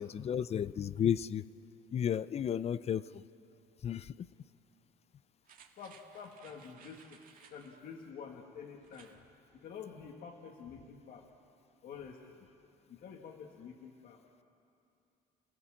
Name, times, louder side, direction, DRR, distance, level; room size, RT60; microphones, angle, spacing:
voice 1, 0.0-1.4 1.9-3.1 3.8-4.1, left 9 dB, 40° left, 18 dB, 0.5 m, -33 dB
sound 1, 5.4-7.8 8.8-9.2 9.6-9.7, right 6 dB, 55° right, 1.9 m, -59 dB
voice 2, 5.8-7.2 7.5-9.1 9.6-11.2 11.8-12.2 12.9-14.2, left 6 dB, 60° left, 1 dB, 1.7 m, -48 dB
29.0 x 16.5 x 7.3 m, 2.7 s
cardioid pair, 110°, 17 cm